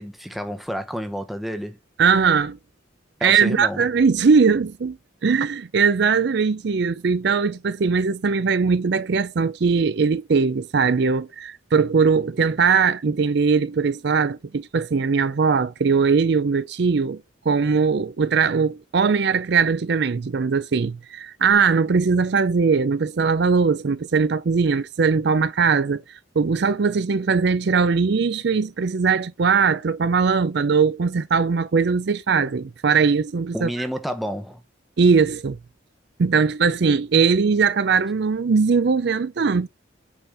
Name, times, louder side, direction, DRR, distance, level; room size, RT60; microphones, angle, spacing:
voice 1, 0.0-1.8 3.2-3.8 33.5-34.6, equal, ahead, 0.8 m, -30 dB
voice 2, 2.0-2.6 3.2-5.0 5.2-17.2 17.5-26.0 26.4-33.7 35.0-35.6 36.2-39.7, right 5 dB, 55° right, 0.4 m, -20 dB
8.7 x 4.3 x 3.4 m
head